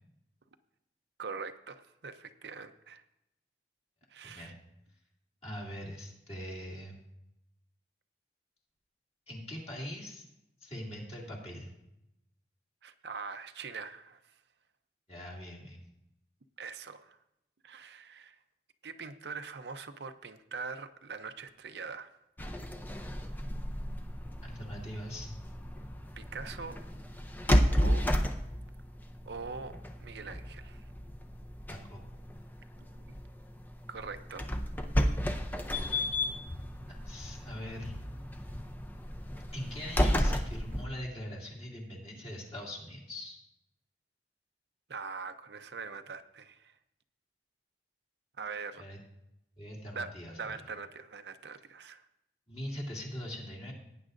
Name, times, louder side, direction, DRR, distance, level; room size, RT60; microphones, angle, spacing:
voice 1, 1.2-3.0 4.1-4.5 12.8-14.4 16.6-17.2 17.6-18.4 18.8-22.1 26.2-26.8 27.4-28.1 29.3-30.9 32.8-33.1 33.9-34.5 40.8-40.9 44.9-46.8 48.4-48.8 49.9-50.1 50.4-52.0, right 5 dB, 70° right, 8 dB, 0.6 m, -43 dB
voice 2, 5.4-7.0 9.3-10.2 10.6-11.7 15.1-15.8 24.4-25.3 31.7-32.0 36.9-37.9 39.5-43.4 48.8-49.0 49.6-50.6 52.5-53.7, equal, 35° left, -3 dB, 2.5 m, -42 dB
sound 1, 22.4-40.9, equal, 10° left, 0.5 m, -33 dB
17.5 x 9.3 x 2.6 m, 0.86 s
head